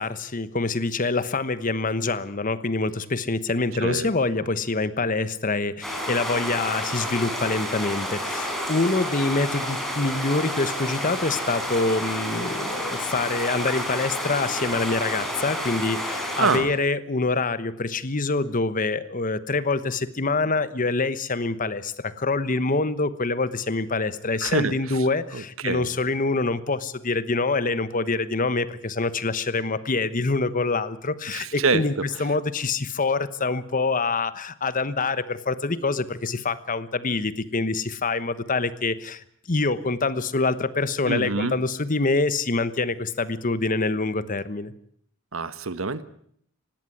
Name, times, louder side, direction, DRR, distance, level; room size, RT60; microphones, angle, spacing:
voice 1, 0.0-31.9 32.2-44.7, left 3 dB, 40° left, 14 dB, 1.1 m, -25 dB
sound 1, 5.8-16.6, equal, ahead, 4.5 m, -30 dB
voice 2, 16.4-16.7 24.4-25.0 25.3-25.9 31.3-32.2 41.1-41.6 45.3-46.0, right 4 dB, 80° right, 13 dB, 1.3 m, -26 dB
19.0 x 16.5 x 9.8 m, 0.66 s
head